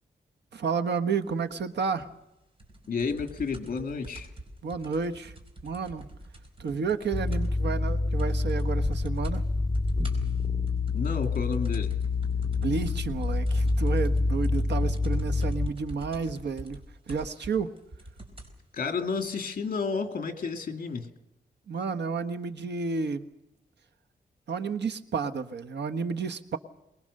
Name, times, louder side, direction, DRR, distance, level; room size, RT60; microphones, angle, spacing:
voice 1, 0.5-2.1 4.6-5.3 5.6-6.1 6.6-9.5 12.4-16.8 17.1-17.7 21.7-23.3 24.5-26.6, right 5 dB, 85° right, 8 dB, 1.3 m, -31 dB
sound 1, 2.6-7.6 7.9-8.0 8.2-8.7 8.9-9.4 9.7-18.6 19.4-19.5, right 1 dB, 30° right, 4.4 m, -46 dB
voice 2, 2.9-4.3 10.9-12.0 18.7-21.1, left 5 dB, 55° left, 6 dB, 2.4 m, -31 dB
sound 2, 7.1-15.7, left 3 dB, 20° left, 3.3 m, -27 dB
23.0 x 21.0 x 6.6 m, 0.89 s
wide cardioid pair, 150°, 17 cm